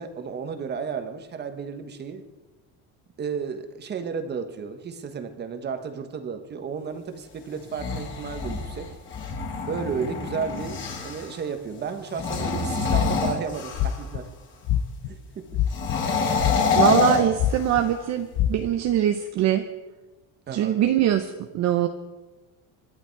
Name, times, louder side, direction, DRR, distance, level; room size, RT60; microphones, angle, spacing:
voice 1, 0.0-2.2 3.2-8.9 9.7-14.3 15.1-15.6 20.5-20.8, right 6 dB, 25° right, 8 dB, 1.3 m, -33 dB
sound 1, 7.6-11.3 12.1-14.1 15.7-18.0, left 4 dB, 25° left, 3.4 m, -26 dB
sound 2, 12.9-13.3 13.7-14.2 14.6-15.1 15.5-16.0 16.4-17.0 17.4-17.8 18.3-18.5, left 12 dB, 45° left, 0.9 m, -23 dB
voice 2, 16.8-19.6 20.5-21.9, right 11 dB, 40° right, 7 dB, 0.9 m, -23 dB
26.5 x 11.5 x 4.6 m, 1.2 s
cardioid pair, 175°, 43 cm